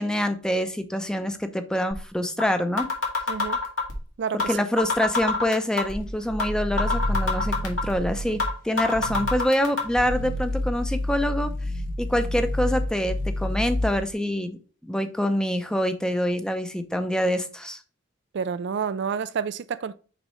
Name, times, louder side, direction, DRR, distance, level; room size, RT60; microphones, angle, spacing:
voice 1, 0.0-2.9 4.3-11.5 12.0-14.6 14.8-17.8, equal, 5° left, 0.6 m, -26 dB
sound 1, 1.9-2.0 2.4-2.5 2.8-4.0 4.4-4.5 4.8-6.0 6.4-6.5 6.8-8.0 8.4-8.5 8.8-9.8, left 3 dB, 75° left, 2.1 m, -25 dB
voice 2, 3.3-3.6 4.2-4.6 18.3-19.9, right 6 dB, 60° right, 0.4 m, -29 dB
sound 2, 6.0-8.6 8.9-9.4 9.8-14.1, left 1 dB, 45° left, 0.6 m, -29 dB
6.2 x 5.3 x 3.1 m
head